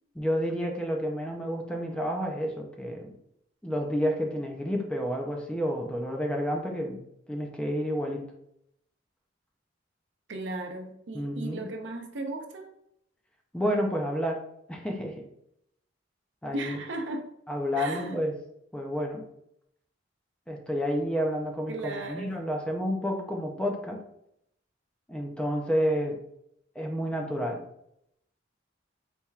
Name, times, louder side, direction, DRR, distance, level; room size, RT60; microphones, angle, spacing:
voice 1, 0.2-3.1 3.6-7.0 7.3-8.2 11.1-11.7 13.5-14.4 14.7-15.1 16.4-16.7 17.5-18.3 18.7-19.2 20.5-24.0 25.1-26.2 26.8-27.6, equal, 5° left, 1 dB, 0.5 m, -30 dB
voice 2, 10.3-12.7 16.5-17.3 17.8-18.2 21.7-22.3, right 2 dB, 70° right, 3 dB, 0.6 m, -36 dB
4.2 x 3.4 x 2.3 m, 0.75 s
head